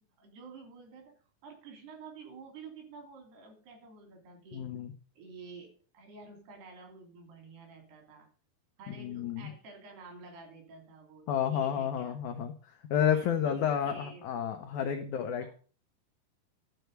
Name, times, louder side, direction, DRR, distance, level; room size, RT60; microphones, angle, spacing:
voice 1, 0.2-1.1 1.4-4.7 5.2-8.3 8.8-12.2 13.1-14.3 15.4-15.5, right 4 dB, 75° right, 3 dB, 4.8 m, -50 dB
voice 2, 4.5-4.9 8.9-9.5 11.3-12.5 12.9-15.5, left 8 dB, 85° left, 6 dB, 1.7 m, -30 dB
12.0 x 4.6 x 8.0 m, 0.41 s
omnidirectional pair, 4.6 m